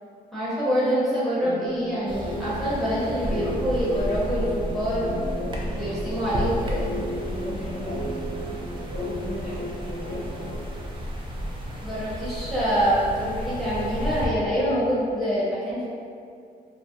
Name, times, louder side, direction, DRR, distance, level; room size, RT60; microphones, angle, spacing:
voice 1, 0.3-5.0 5.7-6.8 11.8-15.9, equal, ahead, -11 dB, 0.7 m, -25 dB
sound 1, 1.4-10.7, equal, 80° left, 0.7 m, -35 dB
sound 2, 2.1-14.3, equal, 30° right, 0.4 m, -33 dB
sound 3, 2.5-9.6, equal, 75° right, 1.1 m, -42 dB
voice 2, 6.2-6.6 7.2-8.2 8.9-10.6, right 1 dB, 50° right, -10 dB, 1.1 m, -38 dB
2.3 x 2.0 x 2.6 m, 2.3 s
cardioid pair, 85°, 17 cm